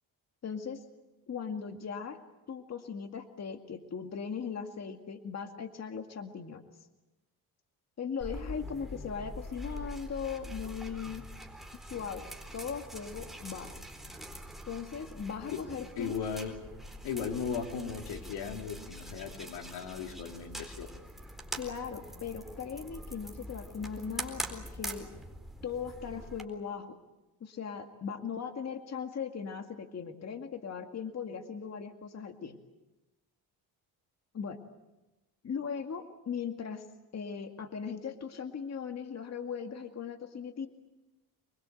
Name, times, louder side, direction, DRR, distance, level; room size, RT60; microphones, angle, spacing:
voice 1, 0.4-0.8 1.3-2.2 2.5-6.6 8.0-11.3 11.9-12.3 12.5-13.8 14.7-16.1 21.6-25.1 25.6-27.0 27.4-32.6 34.3-34.6 35.4-36.9 37.1-40.7, left 6 dB, 40° left, 5 dB, 2.2 m, -39 dB
sound 1, 8.2-26.4, equal, ahead, 4.0 m, -44 dB
voice 2, 16.0-16.6 17.0-20.9, left 6 dB, 85° left, 3 dB, 3.5 m, -37 dB
26.0 x 23.0 x 7.9 m, 1.0 s
cardioid pair, 100°, 38 cm